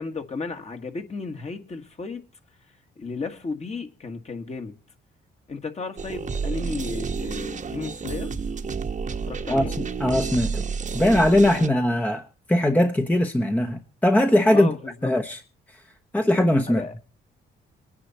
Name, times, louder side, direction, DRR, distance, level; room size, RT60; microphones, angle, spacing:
voice 1, 0.0-2.2 3.0-4.7 5.5-8.3 9.3-9.7 14.5-15.1 16.7-16.9, left 4 dB, 35° left, 1.9 m, -34 dB
sound 1, 6.0-11.7, right 5 dB, 40° right, 1.2 m, -30 dB
voice 2, 9.5-10.6 10.9-14.7 15.0-15.4 16.1-16.8, left 1 dB, 10° left, 1.1 m, -20 dB
23.0 x 9.9 x 4.3 m
cardioid pair, 90°, 20 cm